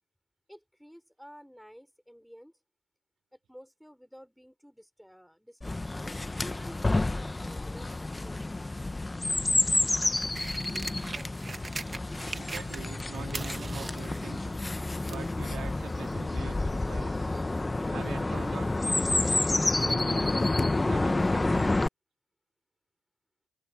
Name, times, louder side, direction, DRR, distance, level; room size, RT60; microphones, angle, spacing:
voice 1, 0.5-2.5 3.3-6.1 6.5-8.8, equal, ahead, 3.9 m, -52 dB
Chirp tweet, 5.6-21.9, left 2 dB, 15° left, 0.9 m, -29 dB
sound 1, 9.5-13.0 13.3-15.3 16.1-16.2, right 3 dB, 25° right, 1.5 m, -41 dB
voice 2, 12.3-14.6 15.1-17.4 17.9-19.5 19.8-20.4 20.8-21.8, right 9 dB, 70° right, 3.3 m, -45 dB
cardioid pair, 90°, 0 cm